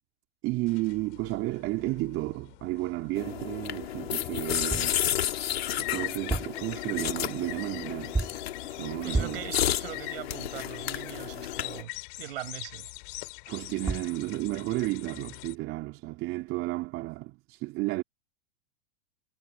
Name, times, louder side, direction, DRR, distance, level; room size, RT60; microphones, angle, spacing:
voice 1, 0.4-8.4 8.7-9.4 13.5-18.0, right 20 dB, 45° right, 3.6 m, -33 dB
sound 1, 0.7-15.6, left 29 dB, 55° left, 5.9 m, -43 dB
sound 2, 3.2-11.8, left 11 dB, 85° left, 3.2 m, -32 dB
sound 3, 4.7-5.0 6.1-6.7 8.1-8.5 9.1-9.5 13.6-13.7 13.9-14.2, right 3 dB, 10° right, 3.1 m, -31 dB
voice 2, 9.0-12.9, right 14 dB, 75° right, 6.9 m, -41 dB
hypercardioid pair, 120°, 30 cm